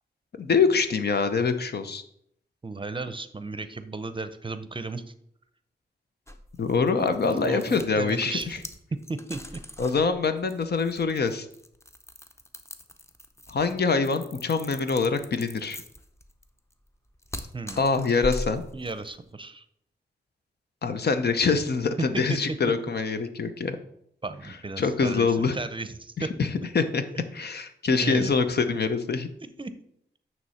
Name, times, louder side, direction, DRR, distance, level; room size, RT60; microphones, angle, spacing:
voice 1, 0.4-2.0 6.6-8.6 9.8-11.5 13.5-15.8 17.8-18.6 20.8-23.8 24.8-25.6 26.2-26.5 26.7-27.0 27.3-29.3, left 4 dB, 65° left, 8 dB, 0.7 m, -25 dB
voice 2, 2.6-5.0 7.4-8.5 9.1-9.4 17.5-17.8 18.7-19.6 23.4-23.5 24.2-26.3 28.0-28.3 29.6-29.7, right 3 dB, 30° right, 11 dB, 0.6 m, -35 dB
sound 1, 6.3-19.2, left 1 dB, 15° left, 0.7 m, -41 dB
9.3 x 3.1 x 5.6 m, 0.71 s
cardioid pair, 65°, 18 cm